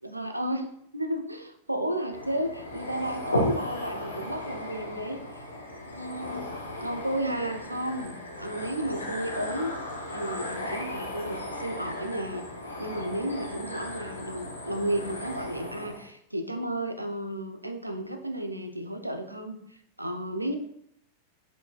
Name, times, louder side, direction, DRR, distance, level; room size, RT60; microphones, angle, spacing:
voice 1, 0.0-5.5 5.9-6.5 6.8-9.7 10.1-12.4 12.8-20.6, right 1 dB, 85° right, 6 dB, 0.5 m, -33 dB
sound 1, 2.1-16.1, left 1 dB, 75° left, 0.7 m, -36 dB
4.6 x 4.1 x 2.4 m, 0.71 s
figure-of-eight pair, 90°, 0 cm